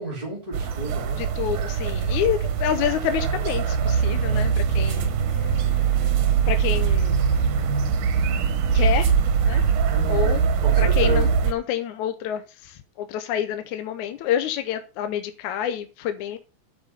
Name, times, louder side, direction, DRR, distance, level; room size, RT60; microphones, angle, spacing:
voice 1, 0.0-1.2 9.9-11.3, right 2 dB, 10° right, -4 dB, 2.7 m, -32 dB
sound 1, 0.5-11.5, right 7 dB, 80° right, 2.7 m, -22 dB
voice 2, 1.2-5.1 6.5-7.2 8.7-9.1 9.4-9.6 10.1-10.4 10.8-16.4, left 10 dB, 80° left, 9 dB, 2.1 m, -28 dB
9.0 x 6.6 x 5.4 m, 0.32 s
omnidirectional pair, 3.6 m